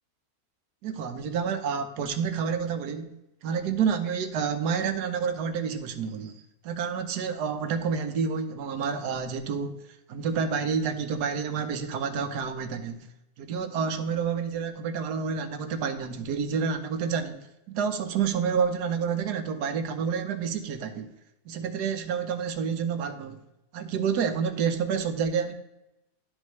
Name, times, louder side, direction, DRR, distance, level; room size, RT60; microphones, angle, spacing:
voice 1, 0.8-3.1 3.4-9.8 10.1-13.1 13.4-17.4 17.7-21.1 21.5-23.4 23.7-25.5, right 6 dB, 85° right, 1.4 m, -29 dB
11.5 x 5.0 x 3.1 m
omnidirectional pair, 1.7 m